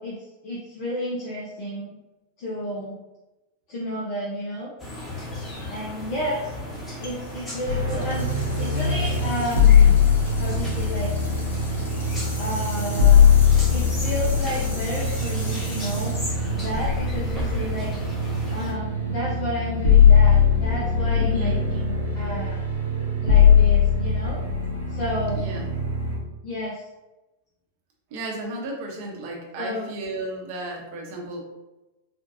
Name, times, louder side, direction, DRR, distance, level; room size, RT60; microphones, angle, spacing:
voice 1, 0.0-2.0 2.4-3.0 3.7-4.7 5.7-6.5 7.0-10.0 10.3-11.1 12.4-13.4 13.7-16.2 16.6-18.2 18.5-22.6 23.2-24.4 24.9-25.4 26.4-26.9 29.6-29.9, equal, 45° left, -5 dB, 0.8 m, -31 dB
sound 1, 4.8-18.7, left 1 dB, 15° left, 1.3 m, -35 dB
sound 2, 7.0-17.2, left 2 dB, 70° left, 0.9 m, -41 dB
sound 3, 7.7-26.2, left 6 dB, 85° right, 0.8 m, -20 dB
voice 2, 21.1-21.7 25.3-25.7 28.1-31.4, right 1 dB, 50° right, -1 dB, 0.9 m, -33 dB
4.3 x 2.5 x 2.6 m, 1.0 s
figure-of-eight pair, 90°, 0 cm